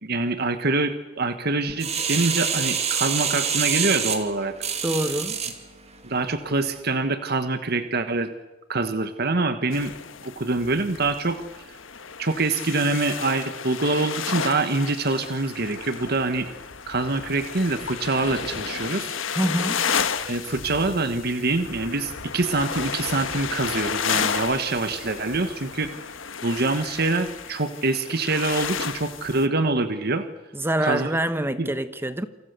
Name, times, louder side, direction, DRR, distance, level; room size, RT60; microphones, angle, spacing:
voice 1, 0.0-4.5 6.0-8.3 8.7-9.9 10.2-11.4 12.2-16.5 16.9-19.2 20.2-25.9 26.4-30.2 30.8-31.1 31.6-31.7, right 3 dB, 55° right, 1.4 m, -25 dB
sound 1, 1.8-5.6 6.1-6.2, right 7 dB, 35° right, 2.6 m, -26 dB
voice 2, 4.8-5.4 19.3-19.9 30.5-32.3, right 1 dB, 10° right, 1.1 m, -25 dB
sound 2, 9.7-29.5, left 6 dB, 90° left, 1.5 m, -32 dB
28.5 x 26.0 x 6.9 m
head